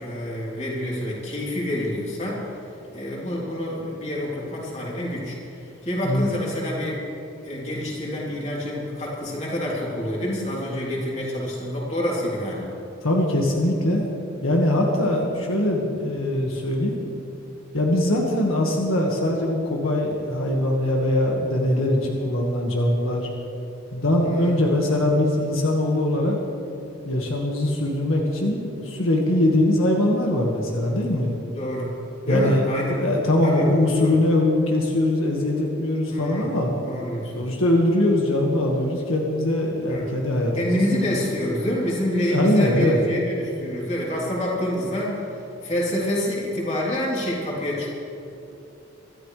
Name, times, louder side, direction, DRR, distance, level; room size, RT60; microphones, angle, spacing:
voice 1, 0.0-2.5 2.9-7.0 7.4-12.8 24.2-24.5 31.5-31.9 32.3-33.0 33.4-33.7 34.0-34.2 36.1-36.5 36.9-37.5 39.9-40.1 40.5-47.9, left 1 dB, 30° left, -5 dB, 3.4 m, -27 dB
voice 2, 13.0-14.1 14.4-17.0 17.7-23.3 23.9-26.4 27.0-31.3 32.3-32.6 32.9-36.7 37.3-40.8 42.3-43.0, left 1 dB, 80° left, -1 dB, 1.7 m, -22 dB
24.5 x 13.5 x 3.3 m, 2.8 s
head